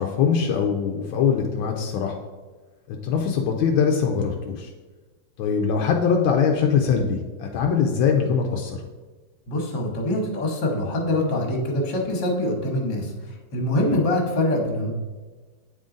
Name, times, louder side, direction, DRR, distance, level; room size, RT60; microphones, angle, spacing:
voice 1, 0.0-2.2 2.9-4.7 5.4-8.8 13.8-13.9, left 6 dB, 85° left, 2 dB, 1.4 m, -22 dB
voice 2, 9.5-13.1 13.5-14.9, left 1 dB, 60° left, 0 dB, 1.8 m, -24 dB
8.8 x 3.8 x 3.8 m, 1.3 s
omnidirectional pair, 2.2 m